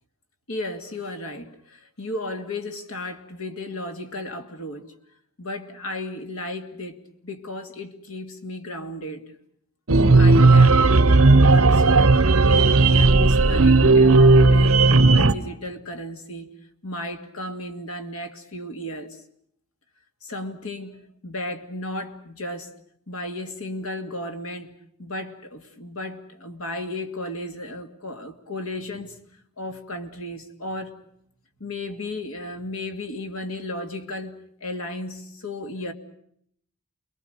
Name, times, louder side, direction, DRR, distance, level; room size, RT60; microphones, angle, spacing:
voice 1, 0.5-4.9 5.4-9.3 10.2-10.8 11.4-16.5 16.8-19.2 20.2-22.7 23.1-24.7 25.0-29.2 29.6-31.0 31.6-35.9, left 1 dB, 75° left, 2.4 m, -34 dB
sound 1, 9.9-15.3, right 3 dB, 75° right, 1.1 m, -15 dB
30.0 x 22.0 x 6.7 m
head